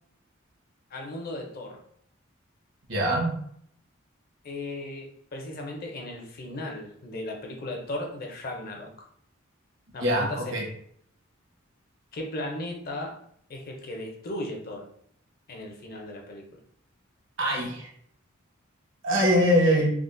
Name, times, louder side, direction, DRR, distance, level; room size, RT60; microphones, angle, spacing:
voice 1, 0.9-1.8 4.4-8.9 9.9-10.5 12.1-13.2 13.5-14.9 15.5-16.4, left 1 dB, 45° left, 2 dB, 0.5 m, -36 dB
voice 2, 2.9-3.4 10.0-10.6 17.4-17.9 19.0-19.9, equal, 65° right, -2 dB, 1.0 m, -23 dB
3.5 x 2.1 x 2.5 m, 0.66 s
head